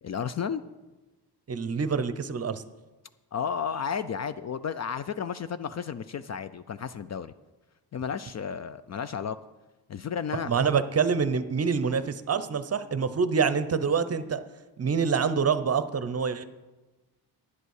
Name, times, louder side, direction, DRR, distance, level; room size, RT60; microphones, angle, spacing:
voice 1, 0.0-0.6 3.3-7.3 7.9-9.4 9.9-10.5, left 7 dB, 40° left, 13 dB, 0.4 m, -32 dB
voice 2, 1.5-2.6 10.5-14.4 14.8-16.4, right 6 dB, 35° right, 12 dB, 0.7 m, -26 dB
9.8 x 8.2 x 6.4 m, 1.2 s
cardioid pair, 90°, 42 cm